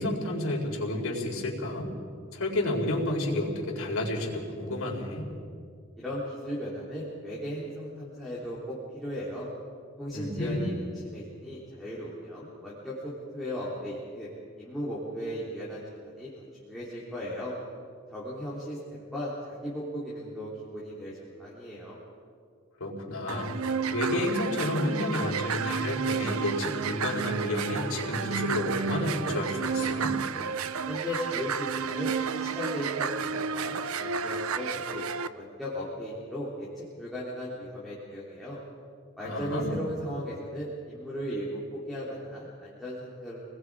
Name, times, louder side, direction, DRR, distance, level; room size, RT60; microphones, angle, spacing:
voice 1, 0.0-1.9 2.3-5.3 10.1-10.7 22.8-23.5 23.9-30.2 39.2-39.8, left 1 dB, 80° left, -1 dB, 4.3 m, -30 dB
voice 2, 6.0-9.5 10.0-10.7 11.0-14.3 14.6-17.5 18.1-22.0 30.9-35.0 35.3-38.6 39.2-43.4, equal, ahead, -9 dB, 3.5 m, -36 dB
sound 1, 23.3-35.3, right 6 dB, 85° right, 0.7 m, -31 dB
27.5 x 20.5 x 4.9 m, 2.2 s
head